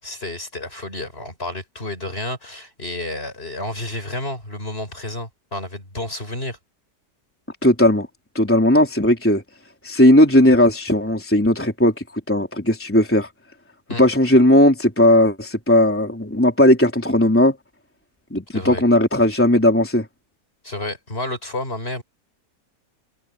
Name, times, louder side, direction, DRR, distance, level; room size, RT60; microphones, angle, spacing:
voice 1, 0.0-6.6 13.9-14.0 18.5-18.8 20.6-22.0, left 1 dB, 35° left, 5.5 m, -30 dB
voice 2, 7.6-8.1 8.3-9.4 9.8-13.3 14.0-17.5 18.3-20.0, left 1 dB, 5° left, 3.3 m, -16 dB
omnidirectional pair, 1.8 m